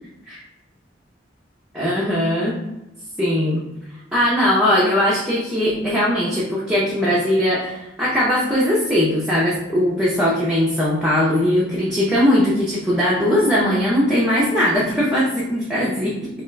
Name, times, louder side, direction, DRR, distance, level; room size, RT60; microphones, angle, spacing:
voice 1, 1.7-2.6 3.2-3.6 4.1-16.3, left 1 dB, 5° right, -7 dB, 0.6 m, -19 dB
5.3 x 2.4 x 2.2 m, 0.94 s
head